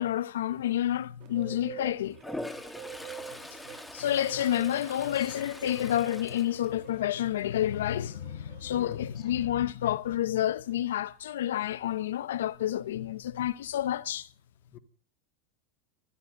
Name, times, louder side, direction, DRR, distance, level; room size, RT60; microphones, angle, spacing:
voice 1, 0.0-2.2 3.7-14.3, left 12 dB, 85° left, 0.8 m, -29 dB
Bird, 1.2-9.5, right 9 dB, 50° right, 2.2 m, -47 dB
Toilet flush, 2.1-7.3 7.7-8.1 12.6-12.7 13.0-13.7, left 1 dB, 5° left, 1.8 m, -43 dB
voice 2, 8.7-9.2 14.7-14.8, left 10 dB, 45° left, 2.1 m, -45 dB
14.5 x 10.5 x 8.1 m
supercardioid pair, 120°, 0 cm